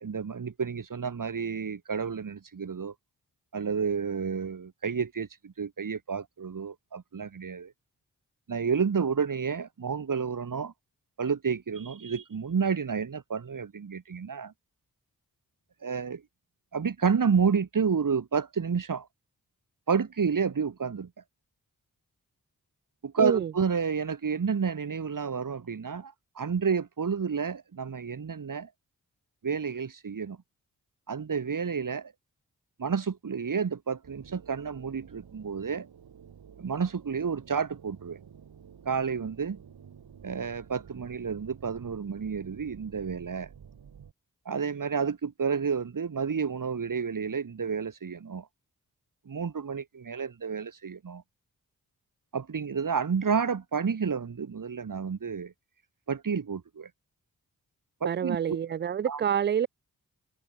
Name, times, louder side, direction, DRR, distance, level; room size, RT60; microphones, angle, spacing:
voice 1, 0.0-2.9 3.5-7.7 8.5-10.7 11.2-14.5 15.8-16.2 16.7-19.1 19.9-21.1 23.0-28.7 29.4-30.4 31.1-32.1 32.8-35.9 36.6-38.2 38.9-39.6 40.2-43.5 44.5-48.5 49.3-51.2 52.3-55.5 56.1-56.9 58.0-58.6 59.0-59.2, right 6 dB, 60° right, 2.5 m, -30 dB
voice 2, 23.2-23.5 58.1-59.7, right 8 dB, 30° right, 0.4 m, -27 dB
sound 1, 34.0-44.1, right 7 dB, 85° right, 7.2 m, -51 dB
cardioid pair, 50°, 37 cm